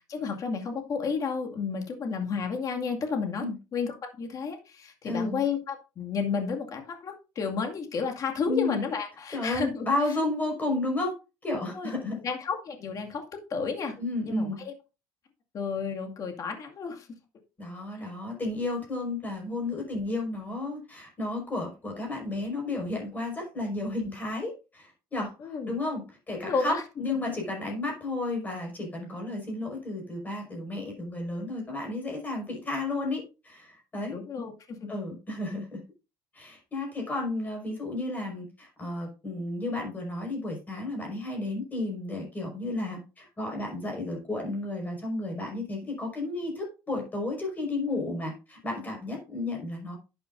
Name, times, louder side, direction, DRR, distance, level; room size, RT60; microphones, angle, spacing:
voice 1, 0.1-3.4 3.7-10.2 11.7-14.0 14.3-14.7 15.5-17.1 25.4-25.7 26.4-27.2 34.0-34.9, left 5 dB, 40° left, 3 dB, 2.2 m, -32 dB
voice 2, 5.0-5.4 8.4-8.8 9.3-11.1 11.4-12.2 14.0-14.6 17.6-25.3 25.7-34.2 34.9-35.8 36.3-50.0, left 2 dB, 20° left, 0 dB, 5.3 m, -32 dB
11.5 x 8.5 x 2.6 m, 0.30 s
cardioid pair, 145°, 9 cm